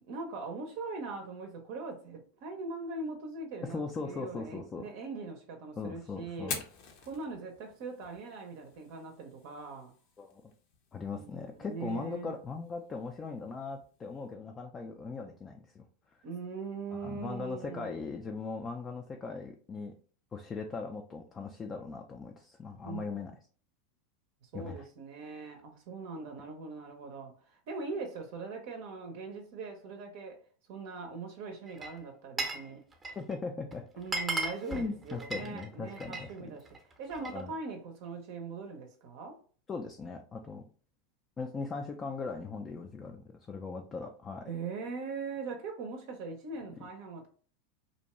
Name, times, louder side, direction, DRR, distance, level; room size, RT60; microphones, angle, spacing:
voice 1, 0.1-6.5 7.0-9.9 11.1-12.4 16.2-18.1 22.8-23.0 24.4-30.4 30.7-32.8 34.0-36.7 37.0-39.4 44.5-47.3, right 4 dB, 60° right, 0.5 m, -41 dB
voice 2, 3.6-4.9 5.8-6.6 10.2-10.4 10.9-15.8 16.9-19.9 20.3-23.3 24.5-24.9 33.2-33.8 34.7-36.3 37.2-37.5 39.7-40.6 41.4-44.5, left 4 dB, 25° left, 0.3 m, -39 dB
Fire, 6.3-14.3, left 5 dB, 60° left, 0.7 m, -48 dB
Glass, 31.7-32.7 32.9-33.3 33.7-33.8 34.0-36.3 36.7-37.4, right 3 dB, 15° right, 0.7 m, -36 dB
2.6 x 2.2 x 2.9 m
hypercardioid pair, 100°, 0 cm